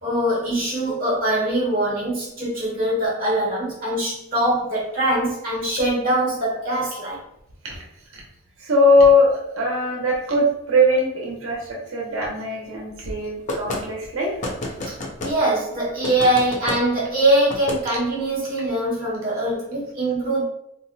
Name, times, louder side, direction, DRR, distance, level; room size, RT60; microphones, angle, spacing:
voice 1, 0.0-7.2 14.9-15.0 15.2-20.4, right 1 dB, 40° right, -6 dB, 1.2 m, -22 dB
voice 2, 8.6-14.4 14.8-14.9, left 1 dB, 75° right, -2 dB, 0.7 m, -20 dB
sound 1, 13.5-13.8 14.4-15.4 16.0-16.8 17.5-17.8, left 1 dB, 35° left, 0.5 m, -29 dB
2.6 x 2.1 x 3.8 m, 0.77 s
head